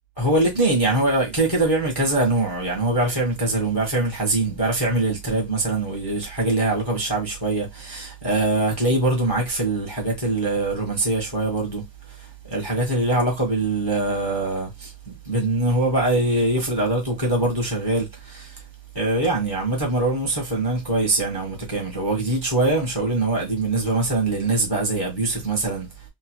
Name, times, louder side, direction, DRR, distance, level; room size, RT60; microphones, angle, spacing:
voice 1, 0.2-14.9 15.2-18.6 18.9-25.9, right 2 dB, 25° left, 0.5 m, -23 dB
3.0 x 2.2 x 2.8 m
omnidirectional pair, 1.8 m